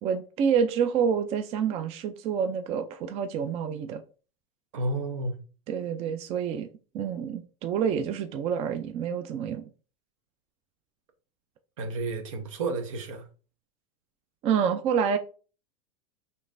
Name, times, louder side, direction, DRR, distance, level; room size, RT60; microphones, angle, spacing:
voice 1, 0.0-4.0 5.7-6.7 6.9-9.6 14.4-15.2, right 7 dB, 40° right, 0.4 m, -27 dB
voice 2, 4.7-5.4 11.8-13.3, right 2 dB, 80° right, 1.0 m, -31 dB
5.0 x 3.2 x 2.6 m
supercardioid pair, 125°, 16 cm